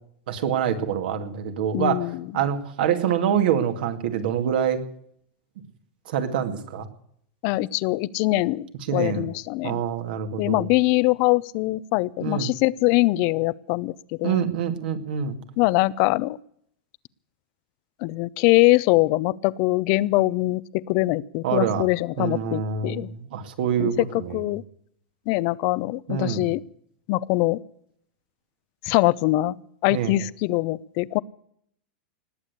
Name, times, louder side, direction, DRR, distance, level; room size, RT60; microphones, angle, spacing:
voice 1, 0.3-2.1 2.3-4.8 6.1-6.9 8.9-9.3 9.6-10.7 12.2-12.5 14.2-15.4 21.4-21.9 22.2-24.4 26.1-26.5 29.9-30.2, right 8 dB, 70° right, 7 dB, 2.3 m, -25 dB
voice 2, 1.7-2.3 7.4-9.8 10.4-13.9 14.2-14.4 15.6-16.4 18.0-23.1 23.8-24.6 25.3-26.6 27.1-27.6 28.8-29.6 29.8-31.2, left 20 dB, 50° left, 21 dB, 0.6 m, -23 dB
19.5 x 8.4 x 8.2 m, 0.68 s
supercardioid pair, 140°, 5 cm